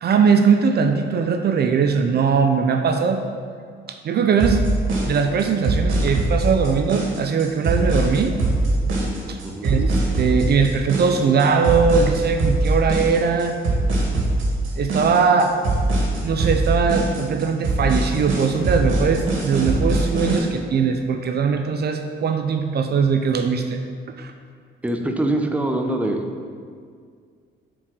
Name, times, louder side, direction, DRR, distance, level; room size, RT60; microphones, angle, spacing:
voice 1, 0.0-3.2 4.0-4.7 5.1-8.3 9.3-9.4 9.6-13.6 14.8-15.5 16.2-23.8 24.2-24.3, right 5 dB, 55° right, 6 dB, 0.6 m, -20 dB
sound 1, 4.4-20.4, right 2 dB, 80° right, 2.1 m, -22 dB
voice 2, 24.8-26.2, right 1 dB, 5° right, 3 dB, 0.8 m, -23 dB
7.5 x 4.7 x 6.3 m, 2.1 s
cardioid pair, 90°, 20 cm